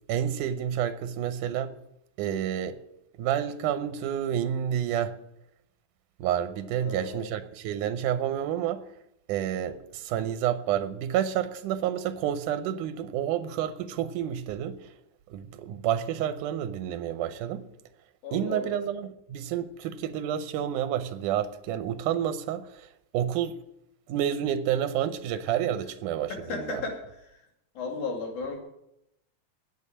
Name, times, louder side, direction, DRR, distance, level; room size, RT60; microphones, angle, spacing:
voice 1, 0.1-1.7 2.2-2.8 3.2-5.1 6.2-8.8 9.3-14.9 15.3-17.6 18.3-22.9 23.1-23.5 24.1-26.8, right 10 dB, 90° right, 2.3 m, -29 dB
voice 2, 6.8-7.3 9.7-9.9 18.2-18.8 26.3-27.5 27.8-28.6, left 4 dB, 75° left, 3.8 m, -35 dB
9.1 x 8.6 x 9.7 m
omnidirectional pair, 3.5 m